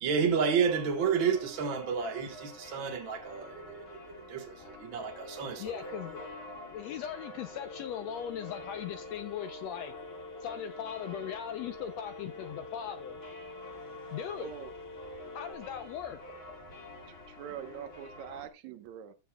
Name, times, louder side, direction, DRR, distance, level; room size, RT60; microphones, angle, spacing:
voice 1, 0.0-5.8, right 6 dB, 50° right, 1.6 m, -31 dB
sound 1, 0.6-18.5, left 1 dB, 30° left, 1.2 m, -48 dB
voice 2, 5.6-9.9 10.4-13.2 14.1-14.5 15.3-16.6, left 10 dB, 75° left, 1.6 m, -39 dB
Telephone, 7.6-15.5, left 2 dB, 60° left, 2.2 m, -47 dB
voice 3, 14.4-14.7 17.1-19.1, right 9 dB, 70° right, 2.3 m, -43 dB
14.5 x 7.6 x 2.3 m
omnidirectional pair, 3.6 m